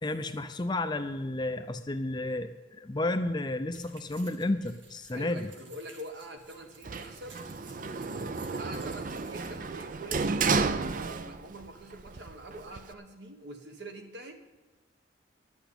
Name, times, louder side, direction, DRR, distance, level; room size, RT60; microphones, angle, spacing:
voice 1, 0.0-2.5 2.8-5.5, left 2 dB, 25° left, 9 dB, 0.5 m, -31 dB
sound 1, 3.7-11.3, right 4 dB, 85° right, 2.0 m, -56 dB
voice 2, 5.1-7.4 8.6-14.3, right 1 dB, 65° right, 4 dB, 1.5 m, -45 dB
Sliding door, 6.8-11.7 12.0-12.9, right 4 dB, 45° right, 0.5 m, -32 dB
11.0 x 8.0 x 8.6 m, 1.2 s
head